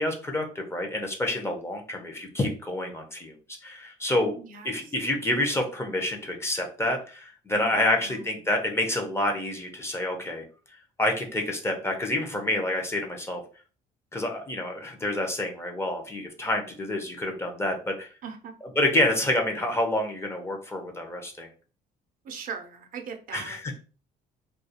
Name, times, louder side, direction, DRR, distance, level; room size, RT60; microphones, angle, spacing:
voice 1, 0.0-3.3 3.6-4.4 4.6-10.4 11.0-13.4 14.1-18.1 18.8-21.5 23.3-23.6, left 1 dB, 15° left, 2 dB, 0.6 m, -28 dB
voice 2, 4.3-4.9 7.5-8.5 18.2-18.5 22.2-23.8, right 5 dB, 55° right, 5 dB, 0.5 m, -41 dB
2.3 x 2.3 x 2.7 m, 0.37 s
cardioid pair, 110°, 17 cm